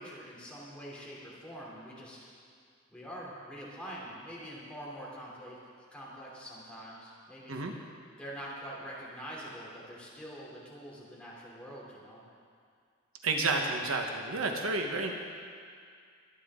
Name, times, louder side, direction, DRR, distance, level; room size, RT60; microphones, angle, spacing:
voice 1, 0.0-2.3 2.9-5.6 5.9-7.6 8.2-12.2, equal, 5° left, -6 dB, 3.2 m, -45 dB
voice 2, 13.2-15.1, right 3 dB, 80° right, 2 dB, 1.2 m, -30 dB
23.0 x 9.9 x 3.8 m, 2.2 s
head